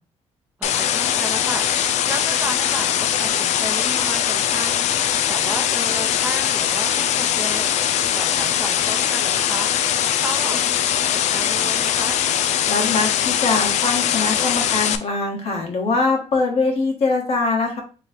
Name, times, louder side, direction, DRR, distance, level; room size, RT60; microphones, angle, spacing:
sound 1, 0.6-15.0, left 10 dB, 80° left, 0.4 m, -21 dB
voice 1, 0.6-12.3, right 1 dB, 15° right, 2 dB, 0.8 m, -33 dB
voice 2, 12.7-17.8, left 3 dB, 60° left, 1 dB, 1.5 m, -22 dB
3.2 x 3.1 x 4.0 m, 0.34 s
cardioid pair, 115°, 12 cm